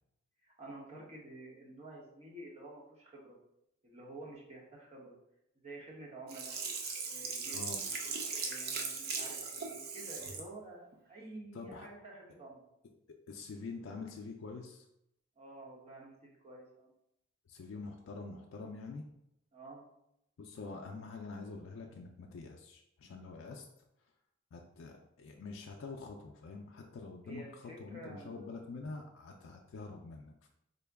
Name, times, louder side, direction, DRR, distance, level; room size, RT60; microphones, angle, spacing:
voice 1, 0.4-3.4 3.8-5.2 5.6-6.6 7.0-7.6 8.4-12.6 15.4-16.9 19.5-19.8 27.2-28.5, right 2 dB, 35° right, -3 dB, 1.0 m, -50 dB
Sink (filling or washing), 6.3-10.5 10.9-11.0, right 5 dB, 50° right, 0.5 m, -39 dB
voice 2, 11.5-11.9 13.3-14.8 17.5-19.0 20.4-23.7 24.5-30.5, left 3 dB, 80° left, 1 dB, 0.4 m, -46 dB
3.8 x 2.2 x 3.4 m, 0.81 s
head